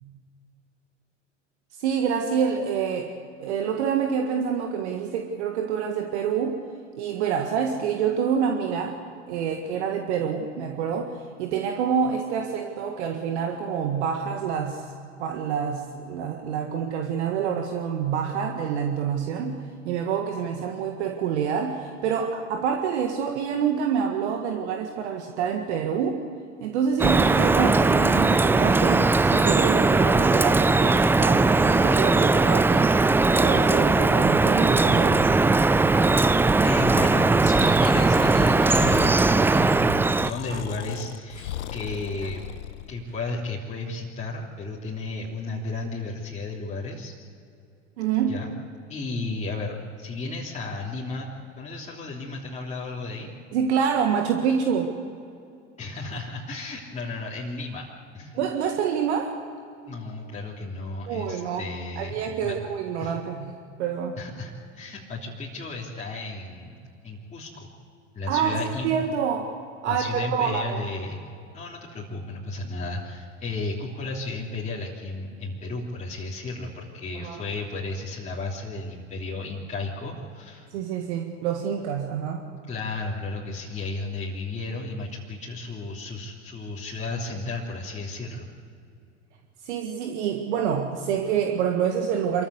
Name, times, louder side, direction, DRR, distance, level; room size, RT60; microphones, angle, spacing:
voice 1, 1.8-6.6 7.0-9.0 9.3-14.9 15.2-26.2 26.6-32.9 33.4-35.4 48.0-48.4 53.5-55.0 58.3-59.4 61.1-61.7 62.0-64.2 68.3-69.6 69.8-70.8 77.2-77.4 80.7-82.5 89.6-92.5, right 7 dB, 65° right, 4 dB, 1.8 m, -27 dB
Drip, 27.0-40.3, right 3 dB, 5° right, 0.4 m, -19 dB
voice 2, 36.6-42.4 42.9-47.1 48.3-48.5 48.9-51.3 51.6-53.3 55.8-57.8 58.1-58.4 59.9-62.5 63.0-63.1 64.2-66.8 67.0-67.7 68.1-68.9 69.8-71.2 71.5-80.7 82.7-88.5, left 3 dB, 20° left, -5 dB, 3.2 m, -33 dB
Breathing, 37.8-42.9, left 11 dB, 70° left, 0.9 m, -37 dB
sound 1, 40.5-43.2, right 2 dB, 30° right, 4.7 m, -48 dB
26.0 x 14.5 x 8.1 m, 2.5 s
hypercardioid pair, 80°, 36 cm